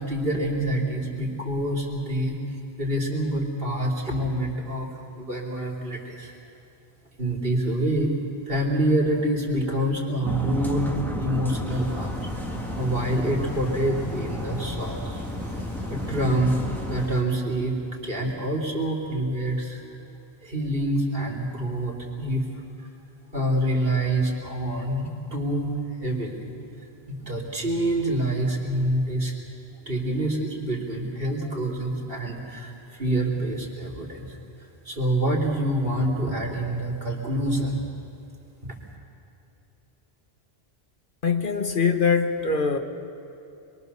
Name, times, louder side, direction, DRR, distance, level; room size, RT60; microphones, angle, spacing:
voice 1, 0.0-2.4 2.8-6.3 7.2-8.1 8.5-10.9 11.2-12.3 12.8-15.2 15.9-16.6 16.9-17.8 18.0-19.8 20.4-22.5 22.8-22.9 23.3-26.5 26.8-29.3 29.7-34.4 34.9-37.8 38.6-38.7, right 1 dB, 60° right, 3.5 m, -26 dB
sound 1, 10.2-17.1, left 1 dB, ahead, 1.7 m, -32 dB
sound 2, 11.7-17.2, left 1 dB, 80° left, 3.9 m, -46 dB
voice 2, 41.2-42.8, left 5 dB, 55° left, 1.2 m, -23 dB
26.0 x 22.5 x 6.8 m
omnidirectional pair, 1.1 m